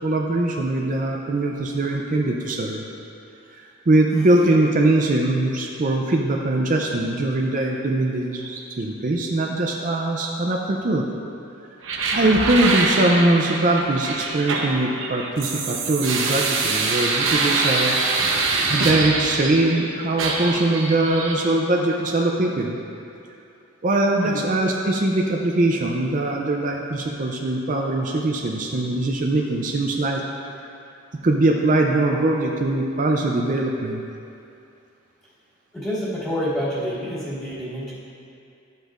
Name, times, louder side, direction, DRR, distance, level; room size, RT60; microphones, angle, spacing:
voice 1, 0.0-2.8 3.5-11.0 12.1-18.0 18.7-22.8 23.8-30.2 31.2-34.0, right 2 dB, 40° right, 0 dB, 0.5 m, -21 dB
sound 1, 11.8-19.8 20.2-21.4, right 3 dB, 80° right, 1.0 m, -24 dB
voice 2, 35.7-37.9, equal, 10° left, -12 dB, 2.0 m, -27 dB
12.0 x 7.9 x 2.5 m, 2.7 s
head